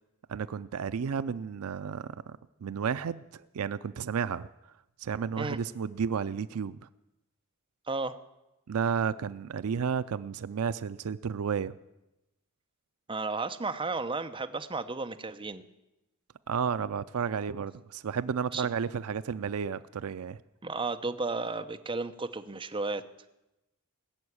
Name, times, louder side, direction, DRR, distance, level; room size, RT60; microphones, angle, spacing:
voice 1, 0.3-4.5 5.0-6.8 8.7-11.7 16.5-20.4, right 6 dB, 70° right, 14 dB, 0.4 m, -32 dB
voice 2, 13.1-15.6 18.5-18.7 20.6-23.0, right 3 dB, 25° right, 7 dB, 0.7 m, -33 dB
20.0 x 7.0 x 9.7 m, 0.95 s
head